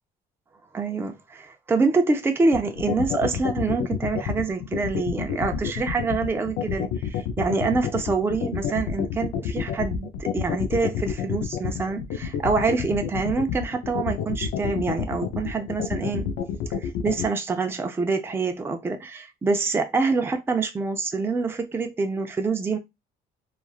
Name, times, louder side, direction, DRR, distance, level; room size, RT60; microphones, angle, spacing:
voice 1, 0.7-16.3 17.0-22.8, right 4 dB, 15° right, 0.4 m, -26 dB
sound 1, 2.5-17.3, left 9 dB, 80° left, 0.5 m, -28 dB
3.1 x 2.4 x 2.3 m
cardioid pair, 110°, 17 cm